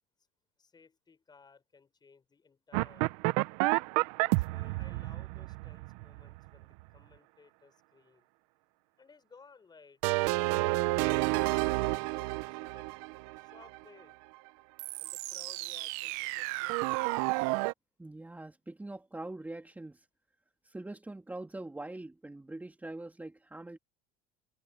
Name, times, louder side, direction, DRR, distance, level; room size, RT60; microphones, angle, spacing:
voice 1, 0.6-3.5 4.1-8.2 9.0-10.0 10.5-12.9 13.3-14.2 15.0-17.6, left 5 dB, 20° left, 6.9 m, -59 dB
sound 1, 2.7-6.8 10.0-13.8 14.8-17.7, right 24 dB, 75° right, 0.8 m, -31 dB
voice 2, 18.0-20.0 20.6-23.8, right 2 dB, 10° right, 3.2 m, -43 dB
supercardioid pair, 110°, 19 cm